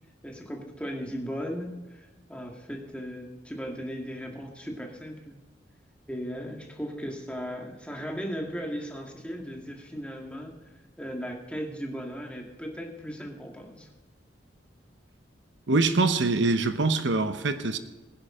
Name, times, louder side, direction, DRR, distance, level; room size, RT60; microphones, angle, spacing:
voice 1, 0.2-5.4 6.1-10.5 11.0-13.9, equal, 5° left, 1.8 m, -37 dB
voice 2, 15.7-17.8, right 3 dB, 90° right, 1.0 m, -24 dB
20.0 x 10.5 x 3.8 m
head